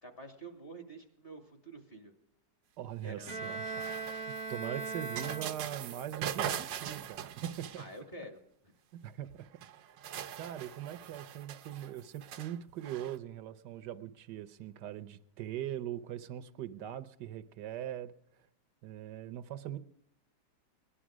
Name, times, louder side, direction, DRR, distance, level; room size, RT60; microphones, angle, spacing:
voice 1, 0.0-2.1 3.0-3.3 7.8-8.7, right 1 dB, 30° left, 5 dB, 2.1 m, -48 dB
voice 2, 2.8-7.8 9.0-9.5 10.4-18.1 18.8-19.8, right 11 dB, 75° right, 14 dB, 1.3 m, -41 dB
Bowed string instrument, 3.3-6.0, right 3 dB, 25° right, 0.9 m, -39 dB
sound 1, 3.4-8.2 9.3-9.4 9.6-13.2, right 9 dB, 90° right, 1.5 m, -42 dB
18.5 x 11.5 x 6.1 m, 0.80 s
omnidirectional pair, 1.9 m